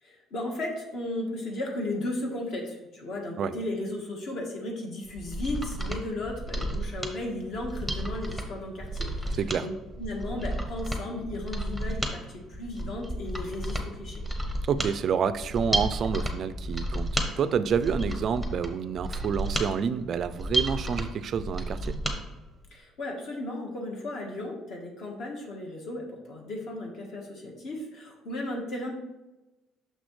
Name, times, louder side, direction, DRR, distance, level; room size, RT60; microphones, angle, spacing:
voice 1, 0.0-9.7 10.0-14.2 22.7-28.9, left 1 dB, 55° left, 0 dB, 1.3 m, -35 dB
Mechanisms, 5.1-22.2 22.5-22.6, right 1 dB, 5° left, 0.8 m, -32 dB
voice 2, 9.3-9.7 14.7-17.1 17.4-22.0, right 7 dB, 40° right, 14 dB, 0.3 m, -28 dB
6.3 x 6.2 x 3.2 m, 1.1 s
cardioid pair, 160°, 0 cm